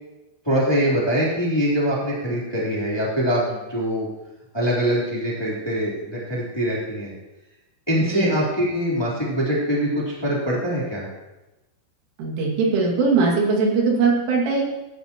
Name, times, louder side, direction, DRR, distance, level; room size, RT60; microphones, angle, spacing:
voice 1, 0.4-4.1 4.5-7.1 7.9-11.1, equal, 10° left, -6 dB, 1.9 m, -23 dB
voice 2, 12.2-14.6, right 4 dB, 75° right, -2 dB, 4.7 m, -20 dB
15.5 x 11.5 x 3.0 m, 1.0 s
omnidirectional pair, 5.8 m